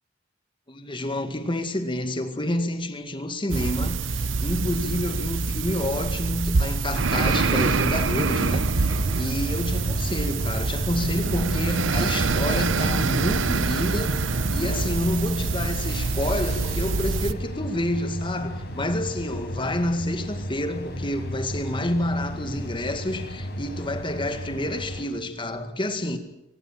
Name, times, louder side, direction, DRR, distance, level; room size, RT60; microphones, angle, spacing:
voice 1, 0.7-26.2, left 1 dB, 25° left, 2.0 m, -29 dB
sound 1, 3.5-17.3, right 4 dB, 75° right, 0.9 m, -25 dB
sound 2, 7.2-25.0, equal, 60° left, 5.3 m, -35 dB
sound 3, 7.9-15.2, equal, 40° right, 6.8 m, -46 dB
23.5 x 19.0 x 7.6 m
head